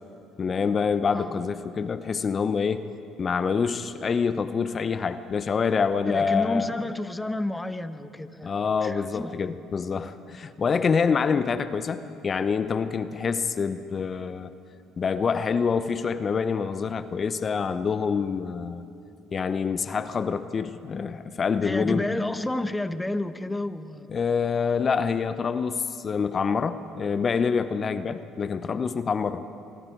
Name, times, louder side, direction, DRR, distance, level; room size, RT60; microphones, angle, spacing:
voice 1, 0.4-2.8 3.2-6.7 8.4-14.5 15.0-18.8 19.3-22.1 24.1-29.4, left 5 dB, 40° left, 12 dB, 0.9 m, -26 dB
voice 2, 6.1-8.5 8.8-9.4 21.6-24.1, left 1 dB, 10° left, 11 dB, 1.2 m, -30 dB
25.0 x 24.5 x 4.7 m, 2.7 s
supercardioid pair, 70°, 0 cm